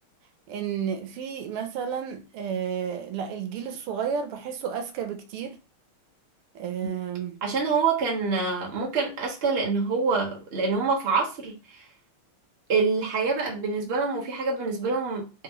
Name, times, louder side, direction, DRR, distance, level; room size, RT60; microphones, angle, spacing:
voice 1, 0.5-5.6 6.5-7.4, right 7 dB, 85° right, 1.6 m, -32 dB
voice 2, 7.4-11.9 12.7-15.4, right 4 dB, 40° right, 1.0 m, -26 dB
3.7 x 3.5 x 3.0 m
omnidirectional pair, 2.4 m